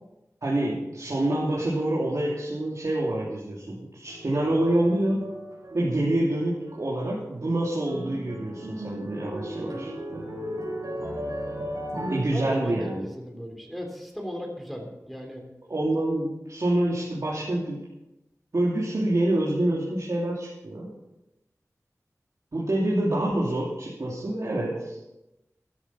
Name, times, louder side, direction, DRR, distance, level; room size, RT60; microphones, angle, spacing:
voice 1, 0.4-5.2 5.7-9.9 12.1-13.0 15.7-17.8 18.5-20.9 22.5-25.1, right 1 dB, 65° right, -5 dB, 3.1 m, -26 dB
sound 1, 4.1-6.4 6.7-7.2 7.5-12.2, equal, 85° right, 4.3 m, -36 dB
voice 2, 12.3-15.4, equal, ahead, 1 dB, 3.3 m, -36 dB
13.0 x 12.5 x 5.9 m, 0.95 s
wide cardioid pair, 65°, 6 cm